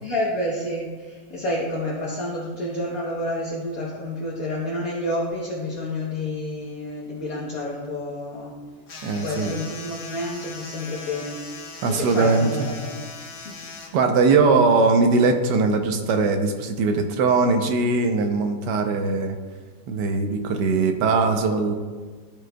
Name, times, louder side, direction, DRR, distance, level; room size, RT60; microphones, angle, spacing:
voice 1, 0.0-8.5 9.2-11.4 11.9-13.0 13.4-13.6, left 1 dB, 55° left, -4 dB, 1.4 m, -29 dB
sound 1, 8.9-13.9, left 3 dB, 85° left, 2.0 m, -39 dB
voice 2, 9.0-9.6 11.8-12.7 13.9-19.4 19.9-21.7, right 4 dB, 75° right, 5 dB, 1.3 m, -20 dB
14.0 x 5.2 x 2.2 m, 1.4 s
omnidirectional pair, 2.0 m